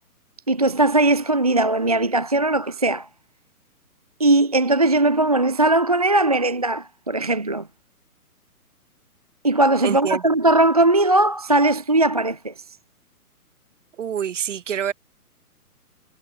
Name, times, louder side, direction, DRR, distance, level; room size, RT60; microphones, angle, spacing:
voice 1, 0.5-3.1 4.2-7.7 9.4-12.5, right 2 dB, 25° right, 0.5 m, -19 dB
voice 2, 9.8-10.2 14.0-14.9, right 8 dB, 50° right, 3.5 m, -26 dB
hypercardioid pair, 165°, 46 cm